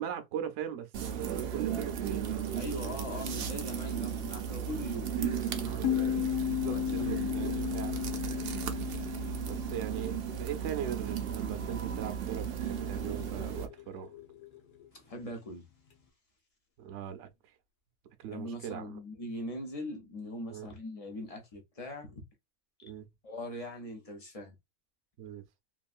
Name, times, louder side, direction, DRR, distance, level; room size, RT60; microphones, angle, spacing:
voice 1, 0.0-3.2 5.6-5.9 6.5-8.0 9.5-14.2 16.8-17.5 18.2-19.0 20.5-20.7 22.8-23.1 25.2-25.4, right 9 dB, 65° right, 0.8 m, -40 dB
sound 1, 0.9-13.7, right 8 dB, 90° right, 0.5 m, -35 dB
voice 2, 2.5-5.8 6.7-7.5 14.9-15.7 18.3-22.2 23.2-24.6, left 1 dB, 55° left, 0.4 m, -41 dB
sound 2, 5.8-11.2, left 12 dB, 90° left, 1.2 m, -34 dB
sound 3, 12.5-15.0 15.4-15.5 15.9-16.1 17.2-17.3, left 13 dB, 70° left, 1.2 m, -52 dB
3.0 x 2.5 x 2.4 m
omnidirectional pair, 1.6 m